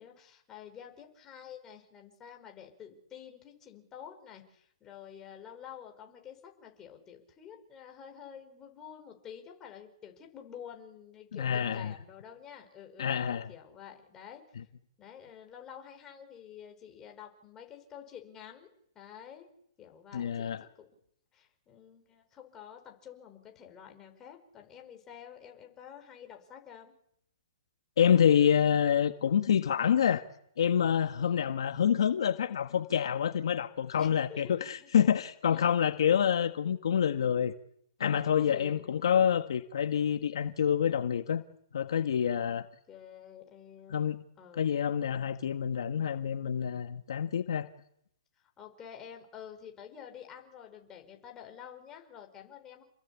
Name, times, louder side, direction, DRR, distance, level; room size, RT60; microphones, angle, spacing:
voice 1, 0.0-14.4 15.0-18.7 18.9-19.5 19.8-20.9 21.3-26.9 31.2-31.4 34.0-34.9 35.5-36.3 38.4-39.0 42.4-42.6 42.9-44.7 48.4-52.8, left 8 dB, 20° left, 5.2 m, -49 dB
voice 2, 11.3-11.9 13.0-13.5 20.1-20.6 28.0-30.2 30.6-37.5 38.0-41.4 41.7-42.6 43.9-44.2 44.6-47.7, left 8 dB, 75° left, 1.5 m, -27 dB
29.5 x 21.5 x 8.6 m
hypercardioid pair, 155°, 3 cm